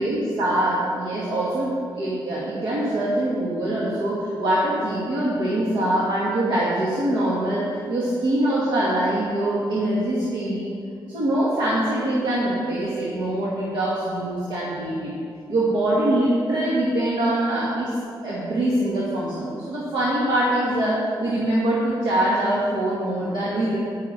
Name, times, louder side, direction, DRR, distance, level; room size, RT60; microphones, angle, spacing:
voice 1, 0.0-10.7 11.1-15.1 15.5-17.9 18.2-23.8, right 1 dB, 70° right, -7 dB, 2.1 m, -23 dB
9.8 x 9.8 x 4.5 m, 2.4 s
wide cardioid pair, 155°, 9 cm